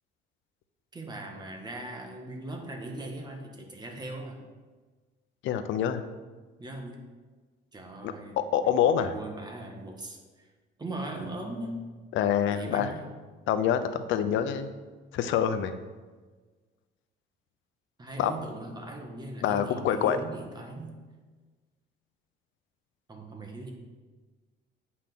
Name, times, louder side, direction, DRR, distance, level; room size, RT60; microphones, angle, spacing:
voice 1, 0.9-4.4 6.6-7.0 7.7-8.7 9.0-10.5 10.8-11.9 12.5-13.1 18.0-21.0 23.1-23.7, right 1 dB, 20° right, 3 dB, 1.5 m, -39 dB
voice 2, 5.4-6.0 8.0-9.1 12.1-12.9 13.5-14.7 15.1-15.7 18.2-18.3 19.4-20.2, left 9 dB, 75° left, 10 dB, 0.8 m, -26 dB
8.6 x 5.7 x 6.0 m, 1.3 s
cardioid pair, 130°, 20 cm